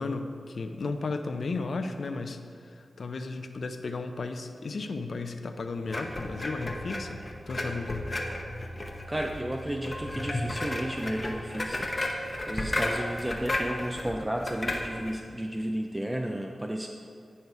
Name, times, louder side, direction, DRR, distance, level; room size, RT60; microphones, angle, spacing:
voice 1, 0.0-8.1, left 3 dB, 65° left, 6 dB, 0.5 m, -34 dB
sound 1, 5.9-15.2, left 1 dB, 30° left, 0.9 m, -34 dB
voice 2, 9.1-16.9, right 1 dB, 15° right, 3 dB, 0.4 m, -33 dB
9.4 x 5.5 x 4.6 m, 2.3 s
wide cardioid pair, 90°, 0 cm